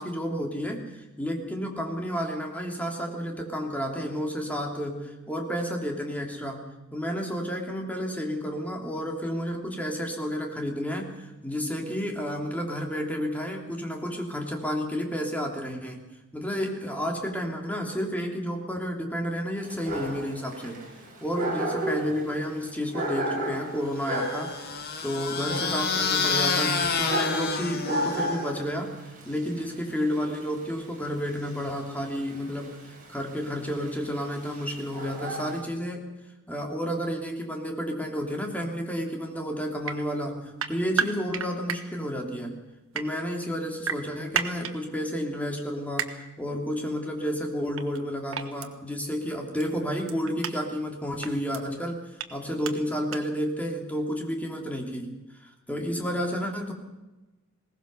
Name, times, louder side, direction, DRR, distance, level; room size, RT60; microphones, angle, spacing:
voice 1, 0.0-6.6 6.9-16.0 16.3-20.8 21.2-36.0 36.5-42.6 42.9-52.0 52.3-55.2 55.4-56.7, equal, 5° left, 1 dB, 3.0 m, -31 dB
Dog, 19.6-35.6, right 1 dB, 40° right, 6.2 m, -34 dB
sound 1, 24.1-28.6, left 5 dB, 50° left, 2.1 m, -28 dB
sound 2, 39.8-40.0 40.6-41.8 42.7-43.1 43.8-44.7 46.0-46.1 47.8-48.0 48.3-48.7 49.6-49.7 50.1-50.5 51.2-51.6 52.2-52.3 52.6-52.7 53.1-53.2, right 6 dB, 70° right, 1.5 m, -30 dB
21.0 x 18.0 x 6.8 m, 1.1 s
head